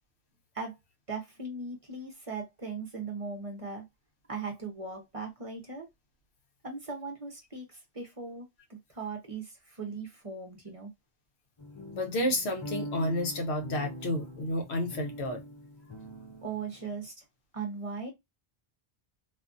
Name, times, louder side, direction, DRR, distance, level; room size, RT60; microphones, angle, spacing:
voice 1, 1.1-3.9 4.3-5.9 6.6-10.9 16.4-17.2 17.5-18.1, right 4 dB, 40° right, 0.7 m, -39 dB
sound 1, 11.6-17.1, equal, 35° left, 0.5 m, -43 dB
voice 2, 11.9-15.4, left 1 dB, 85° left, 1.1 m, -31 dB
2.6 x 2.4 x 2.4 m
omnidirectional pair, 1.1 m